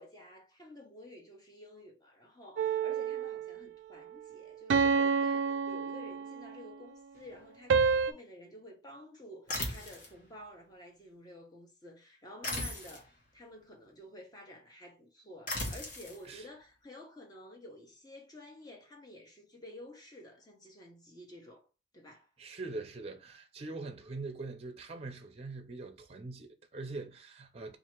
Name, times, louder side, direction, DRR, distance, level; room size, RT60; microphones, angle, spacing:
voice 1, 0.0-21.7 21.9-22.3, left 1 dB, 20° left, 0.9 m, -51 dB
sound 1, 2.6-3.6 4.7-6.6 7.7-8.1, right 5 dB, 85° right, 0.4 m, -28 dB
sound 2, 9.5-10.1 12.4-13.1 15.5-16.2, left 2 dB, 45° left, 1.0 m, -37 dB
voice 2, 22.4-27.8, right 3 dB, 35° right, 0.5 m, -43 dB
2.8 x 2.5 x 4.3 m
head